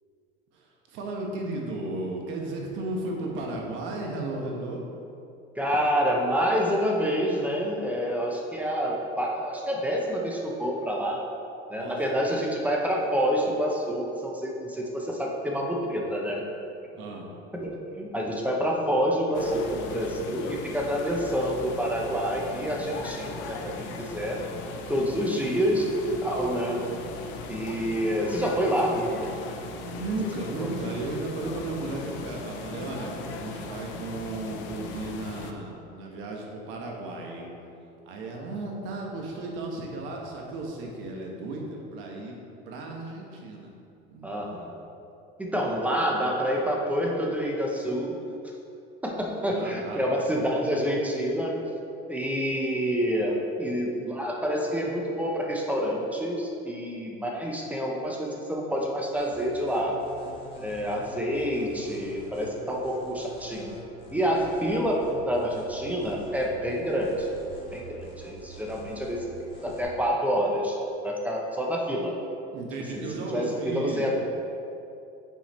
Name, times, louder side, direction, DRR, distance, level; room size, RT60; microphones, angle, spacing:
voice 1, 0.5-4.8 11.7-12.0 17.0-17.3 29.8-37.5 38.0-42.4 42.7-43.7 44.1-44.3 49.5-50.0 72.5-74.1, right 2 dB, 70° right, 0 dB, 1.2 m, -34 dB
voice 2, 5.6-11.2 11.7-16.4 17.6-24.4 24.9-26.8 27.5-29.3 30.6-30.7 44.2-44.7 45.4-48.1 49.0-51.5 52.1-60.0 60.6-63.8 64.1-67.3 67.7-70.8 71.0-72.2 72.9-74.1, equal, 5° right, -1 dB, 0.7 m, -28 dB
sound 1, 19.3-35.5, left 3 dB, 65° left, 0.6 m, -38 dB
sound 2, 59.2-69.8, right 1 dB, 25° left, 1.5 m, -46 dB
5.7 x 4.6 x 4.3 m, 2.7 s
cardioid pair, 135°, 20 cm